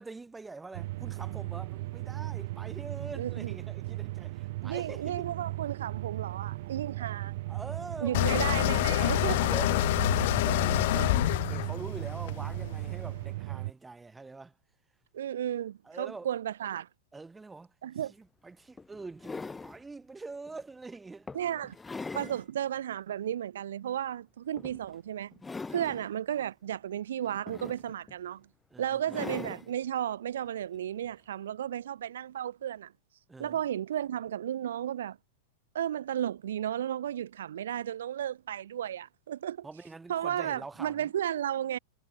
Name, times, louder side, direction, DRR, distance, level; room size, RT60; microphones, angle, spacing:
voice 1, 0.0-5.3 6.9-7.1 7.5-11.1 11.5-14.5 15.8-16.3 17.1-17.7 18.1-21.7 25.7-26.0 28.7-29.2 33.3-33.6 39.6-41.1, right 3 dB, 10° right, 3.8 m, -45 dB
sound 1, 0.7-13.7, right 19 dB, 65° right, 1.0 m, -37 dB
voice 2, 3.2-3.5 4.6-7.3 8.0-9.5 11.0-11.1 15.1-16.9 17.8-18.1 21.3-21.8 22.1-25.3 25.7-28.4 28.8-32.9 33.4-35.2 35.7-39.7 40.1-41.8, right 10 dB, 80° right, 0.6 m, -33 dB
sound 2, 8.1-13.1, left 18 dB, 65° left, 0.4 m, -27 dB
sound 3, 18.0-18.1 18.8-19.8 20.5-20.6 21.3-22.4 22.9-23.0 24.6-25.0 25.3-26.1 27.2-28.1 29.1-29.7 31.1-31.2, left 4 dB, 10° left, 0.9 m, -41 dB
hypercardioid pair, 115°, 0 cm